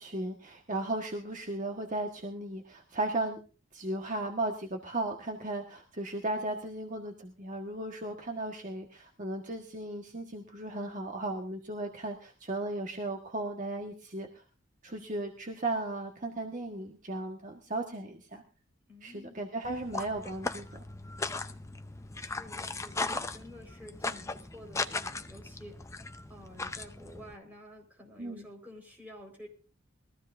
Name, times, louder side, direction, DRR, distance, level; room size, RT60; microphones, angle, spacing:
voice 1, 0.0-3.4 3.7-14.3 14.8-18.4 19.0-20.8 28.2-28.5, right 2 dB, 40° right, 2 dB, 1.5 m, -36 dB
voice 2, 18.9-19.5 22.1-25.8 26.3-29.5, equal, 10° right, -1 dB, 4.7 m, -50 dB
sound 1, 19.6-27.3, left 3 dB, 15° left, 0.6 m, -38 dB
21.5 x 15.0 x 2.6 m, 0.35 s
head